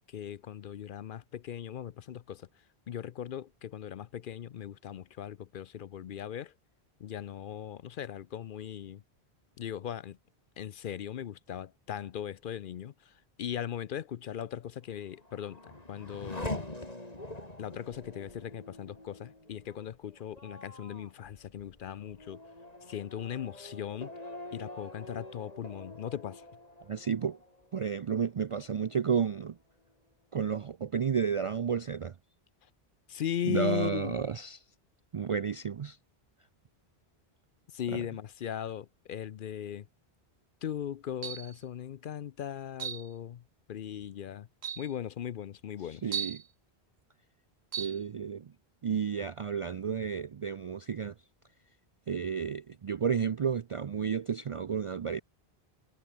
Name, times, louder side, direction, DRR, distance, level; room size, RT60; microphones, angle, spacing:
voice 1, 0.1-2.5 2.9-6.5 7.0-9.0 9.6-10.2 10.6-13.1 13.4-16.6 17.6-22.4 22.9-24.1 24.5-26.4 33.1-34.2 37.7-39.9 40.6-43.4 43.7-44.5 44.8-46.1, left 10 dB, 60° left, 0.7 m, -38 dB
Race car auto racing / Accelerating revving vroom, 14.9-28.2 28.6-29.3, left 1 dB, 40° left, 4.4 m, -45 dB
voice 2, 26.9-27.4 27.7-29.6 30.3-32.1 33.4-34.6 35.1-36.0 37.9-38.0 46.0-46.4 47.8-48.5 48.8-51.1 52.1-55.2, right 7 dB, 55° right, 0.3 m, -31 dB
sound 1, 41.2-41.6 42.8-43.1 44.0-44.1 44.6-44.9 46.1-46.5 47.7-48.0, right 8 dB, 85° right, 1.3 m, -36 dB
omnidirectional pair, 1.1 m